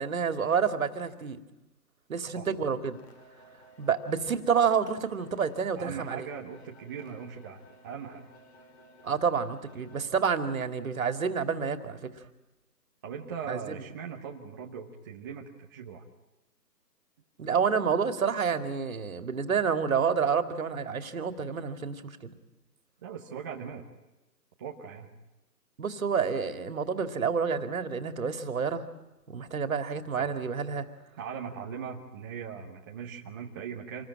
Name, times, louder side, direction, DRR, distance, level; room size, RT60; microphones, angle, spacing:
voice 1, 0.0-1.4 2.1-3.0 3.8-6.3 9.0-12.2 13.5-13.8 17.4-22.2 25.8-28.9 29.3-30.9, right 6 dB, 55° right, 9 dB, 2.5 m, -29 dB
sound 1, 2.9-10.1, equal, 40° left, 5.9 m, -57 dB
voice 2, 5.8-8.2 13.0-16.0 23.0-23.8 24.6-25.1 30.2-30.4 31.2-34.0, right 7 dB, 15° right, -1 dB, 1.0 m, -40 dB
27.5 x 20.5 x 8.8 m, 1.0 s
hypercardioid pair, 160°, 50 cm